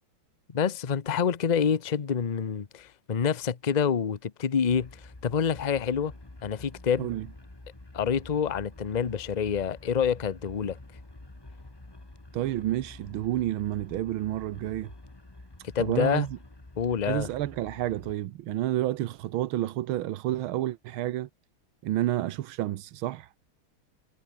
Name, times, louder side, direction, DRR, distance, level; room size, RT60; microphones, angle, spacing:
voice 1, 0.5-6.1 6.4-7.1 7.9-10.8 15.7-16.3 16.8-17.3, left 7 dB, 40° left, 0.6 m, -27 dB
sound 1, 4.7-18.1, left 2 dB, 10° left, 1.7 m, -48 dB
voice 2, 12.3-14.9 15.8-16.4 17.1-21.3 21.8-23.4, right 14 dB, 85° right, 1.7 m, -30 dB
omnidirectional pair, 2.2 m